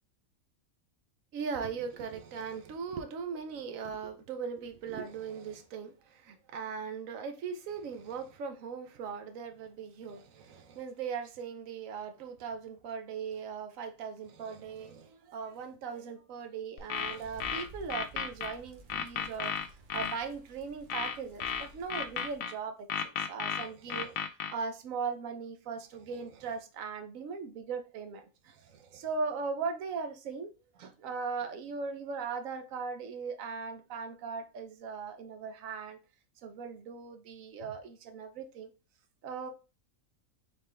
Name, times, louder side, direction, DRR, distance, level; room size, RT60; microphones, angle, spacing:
voice 1, 1.3-19.7 19.9-36.0 36.4-38.7 39.2-39.5, right 5 dB, 75° right, 1.1 m, -39 dB
sound 1, 16.8-18.5 18.9-20.2 20.9-22.5 22.9-24.5, left 7 dB, 85° left, 1.0 m, -34 dB
sound 2, 16.9-22.4, right 1 dB, 50° right, 0.7 m, -54 dB
4.0 x 3.4 x 3.3 m
omnidirectional pair, 1.4 m